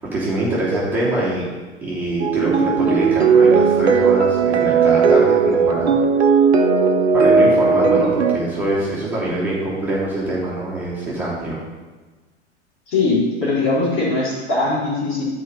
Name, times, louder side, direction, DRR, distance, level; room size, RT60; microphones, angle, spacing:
voice 1, 0.0-1.5 1.8-6.0 7.1-11.6, right 1 dB, 5° right, -10 dB, 3.3 m, -24 dB
sound 1, 2.2-8.4, right 5 dB, 65° right, 1.0 m, -16 dB
voice 2, 12.9-15.2, left 3 dB, 35° left, -6 dB, 3.6 m, -20 dB
12.0 x 5.1 x 5.6 m, 1.3 s
figure-of-eight pair, 95°, 36 cm